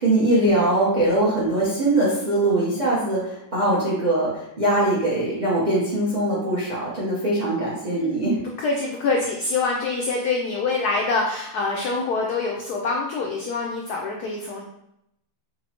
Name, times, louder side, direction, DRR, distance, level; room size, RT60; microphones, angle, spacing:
voice 1, 0.0-8.4, right 1 dB, 75° right, -7 dB, 0.4 m, -22 dB
voice 2, 7.9-8.3 8.6-14.6, left 3 dB, 85° left, -1 dB, 0.8 m, -25 dB
5.1 x 2.0 x 2.9 m, 0.81 s
omnidirectional pair, 2.2 m